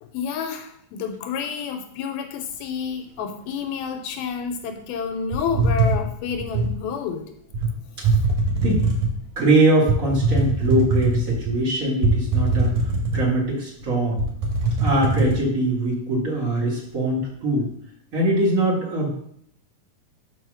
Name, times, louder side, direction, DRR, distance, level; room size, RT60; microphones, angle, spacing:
voice 1, 0.0-7.3 8.3-8.4, left 6 dB, 85° left, 5 dB, 2.5 m, -29 dB
sound 1, 5.3-6.8 7.5-7.7 8.0-9.2 9.9-11.5 12.0-13.5 13.8-13.9 14.2-15.4, right 3 dB, 55° right, 2.6 m, -21 dB
voice 2, 9.3-12.7 13.1-14.2 14.8-17.7 18.1-19.1, right 1 dB, 85° right, -5 dB, 0.7 m, -22 dB
5.4 x 4.8 x 6.2 m, 0.67 s
omnidirectional pair, 4.3 m